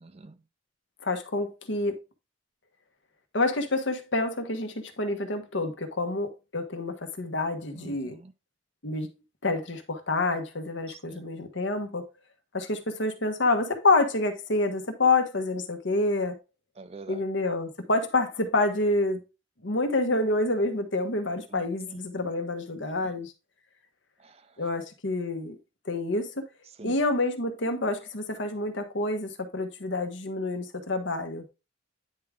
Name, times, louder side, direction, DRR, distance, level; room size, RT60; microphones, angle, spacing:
voice 1, 0.0-0.4 7.8-8.3 10.9-11.2 16.8-17.2 21.5-22.0 24.2-24.5 26.8-26.9, right 3 dB, 30° right, 0.5 m, -46 dB
voice 2, 1.0-2.0 3.3-8.1 8.8-9.1 9.4-12.0 12.5-16.3 17.1-19.2 19.6-23.3 24.6-25.5 25.8-26.5 26.8-31.4, left 2 dB, 70° left, 1.2 m, -28 dB
9.5 x 3.6 x 3.5 m
head